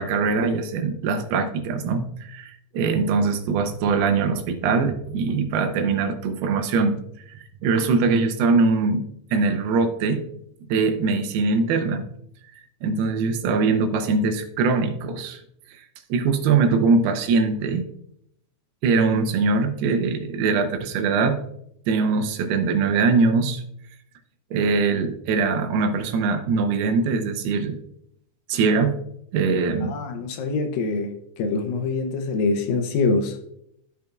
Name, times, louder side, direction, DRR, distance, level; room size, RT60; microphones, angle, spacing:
voice 1, 0.0-7.0 7.3-9.0 9.3-10.2 10.7-12.1 12.8-15.4 15.8-17.9 18.8-21.4 21.9-23.6 24.5-27.8 28.5-29.0 29.3-29.9, right 4 dB, 90° right, 6 dB, 2.8 m, -22 dB
voice 2, 29.8-33.4, left 3 dB, 75° left, 6 dB, 2.2 m, -25 dB
15.0 x 5.2 x 2.4 m, 0.74 s
omnidirectional pair, 4.4 m